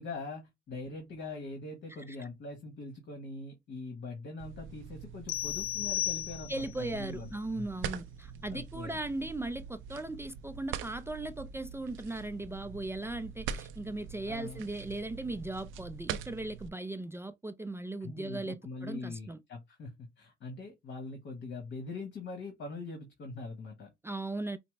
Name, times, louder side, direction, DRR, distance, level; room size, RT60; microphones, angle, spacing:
voice 1, 0.0-7.7 8.5-9.0 14.3-14.6 18.0-23.9, left 3 dB, 65° left, 1.4 m, -42 dB
sound 1, 4.4-16.7, right 7 dB, 85° right, 0.6 m, -44 dB
sound 2, 5.3-6.8, left 13 dB, 90° left, 0.5 m, -34 dB
voice 2, 6.5-19.4 24.0-24.6, right 2 dB, 10° right, 0.4 m, -38 dB
5.7 x 2.1 x 3.2 m
cardioid pair, 90°, 20 cm